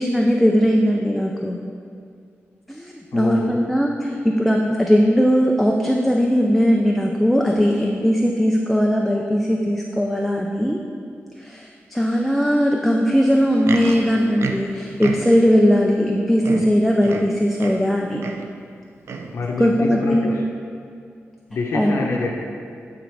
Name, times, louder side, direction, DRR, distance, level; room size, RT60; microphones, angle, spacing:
voice 1, 0.0-1.6 2.7-10.8 11.4-18.2 19.6-20.4 21.7-22.1, equal, ahead, 0 dB, 0.4 m, -19 dB
voice 2, 3.1-3.5 19.3-20.4 21.5-22.4, left 3 dB, 90° left, -1 dB, 0.8 m, -26 dB
Livestock farm animals working animals, 13.3-15.6 16.1-16.2 16.4-17.9 18.2-18.5 19.0-19.4 20.1-20.2, right 4 dB, 70° right, 0.4 m, -32 dB
8.8 x 3.7 x 4.6 m, 2.3 s
wide cardioid pair, 160°, 5 cm